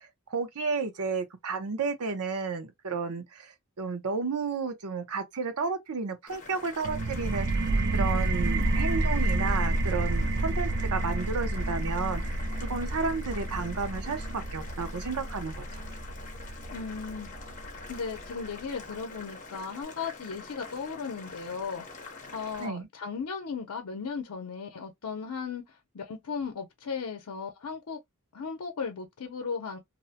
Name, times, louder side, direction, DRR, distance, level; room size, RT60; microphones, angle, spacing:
voice 1, 0.0-15.6 22.6-22.9, right 4 dB, 85° right, 0.7 m, -32 dB
Boiling, 6.3-22.7, left 3 dB, 35° left, 0.8 m, -46 dB
sound 1, 6.8-18.3, right 2 dB, 50° right, 0.4 m, -30 dB
voice 2, 16.7-17.3 17.9-28.0 28.3-29.8, left 5 dB, 90° left, 0.6 m, -36 dB
2.6 x 2.1 x 2.7 m
head